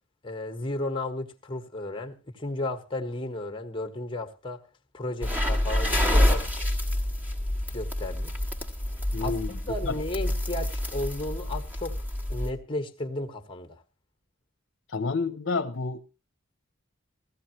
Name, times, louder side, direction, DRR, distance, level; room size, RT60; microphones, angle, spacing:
voice 1, 0.2-4.6 4.9-6.5 7.7-8.3 9.2-12.0 12.3-13.8, left 1 dB, 25° left, 1.4 m, -34 dB
sound 1, 5.2-12.5, left 1 dB, 10° right, 1.6 m, -27 dB
voice 2, 9.1-10.0 14.9-16.0, left 4 dB, 65° left, 0.8 m, -30 dB
17.0 x 14.5 x 3.0 m
head